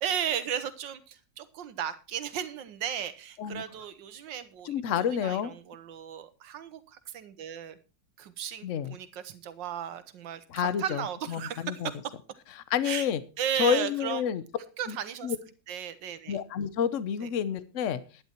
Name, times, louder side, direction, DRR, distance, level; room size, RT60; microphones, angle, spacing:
voice 1, 0.0-4.7 5.2-7.8 8.2-12.0 12.8-13.1 13.4-14.2 14.8-15.3 15.7-16.4 17.2-17.3, right 9 dB, 80° right, 13 dB, 1.7 m, -35 dB
voice 2, 4.6-5.5 8.6-9.0 10.5-11.9 12.7-13.2 13.6-14.4 14.9-15.0 15.2-15.4 16.3-18.0, left 8 dB, 55° left, 15 dB, 1.0 m, -29 dB
11.5 x 10.5 x 4.4 m, 0.33 s
omnidirectional pair, 2.0 m